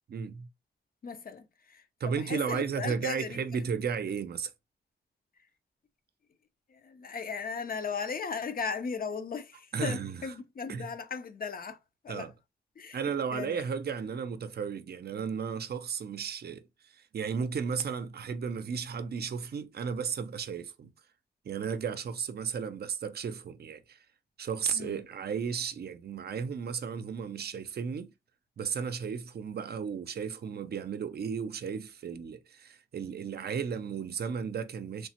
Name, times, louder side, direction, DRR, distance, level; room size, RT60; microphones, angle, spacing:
voice 1, 0.1-0.5 2.0-4.5 9.7-10.2 10.7-10.9 12.1-12.3 12.9-16.6 16.9-20.9 21.4-24.0 24.4-28.1 28.6-35.1, right 6 dB, 60° right, 0.5 m, -34 dB
voice 2, 1.0-3.6 5.4-5.5 6.7-11.8 12.0-12.3 12.8-13.0 13.3-13.6 24.7-25.1, left 5 dB, 50° left, 0.5 m, -37 dB
3.2 x 2.1 x 2.8 m
wide cardioid pair, 85°, 18 cm